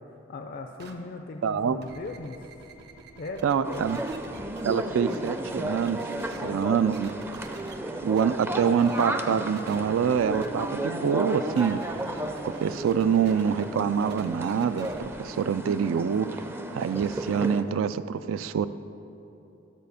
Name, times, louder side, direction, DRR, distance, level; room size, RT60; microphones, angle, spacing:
voice 1, 0.1-2.5 3.2-4.0 6.4-6.9, left 3 dB, 50° left, 4 dB, 0.4 m, -39 dB
sound 1, 0.8-0.9 1.6-4.7 5.1-6.6 6.9-7.8 8.1-8.2 8.8-9.0 9.6-10.5 11.5-15.0, right 3 dB, 55° right, 0.8 m, -47 dB
voice 2, 1.4-1.8 3.4-4.0 4.6-7.3 8.0-11.8 12.4-14.9 15.2-16.3 16.7-18.7, right 7 dB, 85° right, 14 dB, 0.3 m, -25 dB
sound 2, 3.6-17.6, right 1 dB, 10° right, 0.4 m, -34 dB
12.0 x 4.2 x 6.8 m, 2.9 s
head